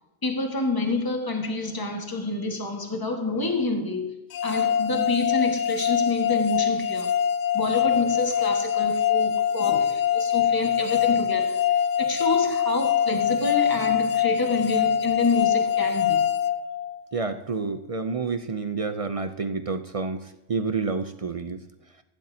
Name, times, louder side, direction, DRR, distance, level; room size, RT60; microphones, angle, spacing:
voice 1, 0.2-4.1 4.4-7.1 7.5-11.6 12.0-16.2, left 3 dB, 15° left, 1.5 m, -28 dB
sound 1, 4.3-17.3, left 8 dB, 80° left, 1.0 m, -24 dB
voice 2, 17.1-20.2 20.5-21.6, right 4 dB, 50° right, 0.4 m, -29 dB
16.0 x 10.5 x 2.8 m
omnidirectional pair, 1.4 m